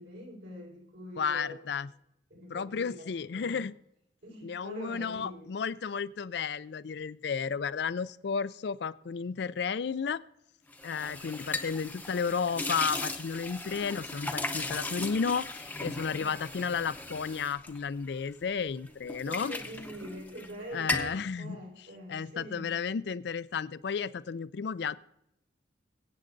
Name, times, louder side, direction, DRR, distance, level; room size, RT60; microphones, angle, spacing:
voice 1, 0.0-1.6 2.3-3.0 3.3-3.7 4.2-5.5 16.1-16.4 19.2-22.7, equal, 75° right, -1 dB, 5.0 m, -44 dB
voice 2, 1.2-1.9 2.5-3.8 4.4-10.2 10.8-19.5 20.7-21.6 22.1-25.0, left 6 dB, 60° left, 17 dB, 0.4 m, -33 dB
sound 1, 10.7-18.5 18.9-20.5 20.8-21.2, left 2 dB, 10° left, 0.7 m, -37 dB
23.0 x 8.6 x 2.6 m, 0.83 s
head